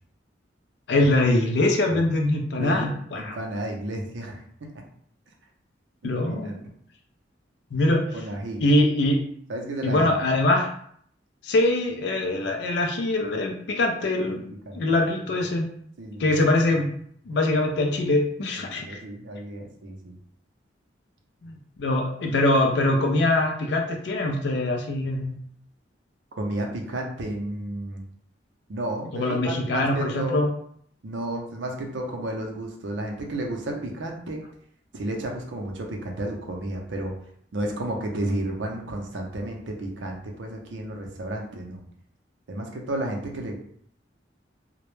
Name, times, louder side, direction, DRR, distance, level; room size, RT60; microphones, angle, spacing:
voice 1, 0.9-3.4 6.0-6.6 7.7-8.0 8.6-9.2 9.8-10.7 11.4-14.4 14.7-15.7 16.2-16.9 17.3-19.0 21.4-25.3 29.1-30.5, left 2 dB, 65° left, 2 dB, 0.4 m, -23 dB
voice 2, 2.6-4.8 6.0-6.5 8.1-8.6 9.5-10.1 14.3-14.8 16.0-16.4 18.7-20.2 26.4-28.0 28.7-30.4 31.0-34.4 34.9-37.1 37.5-41.8 42.5-43.6, right 1 dB, 80° right, 1 dB, 0.5 m, -32 dB
2.1 x 2.0 x 3.0 m, 0.65 s
head